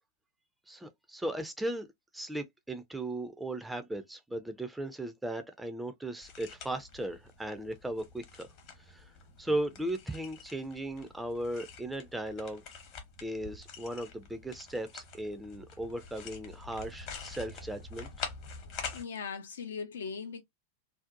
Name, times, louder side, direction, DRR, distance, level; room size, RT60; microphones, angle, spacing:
voice 1, 0.7-1.9 2.1-8.5 8.8-9.1 9.4-12.6 13.2-18.1, right 1 dB, 5° right, 0.4 m, -37 dB
sound 1, 6.2-19.0, left 5 dB, 40° left, 0.8 m, -46 dB
voice 2, 18.9-20.4, left 5 dB, 65° left, 0.3 m, -39 dB
2.6 x 2.0 x 2.5 m
figure-of-eight pair, 90°, 0 cm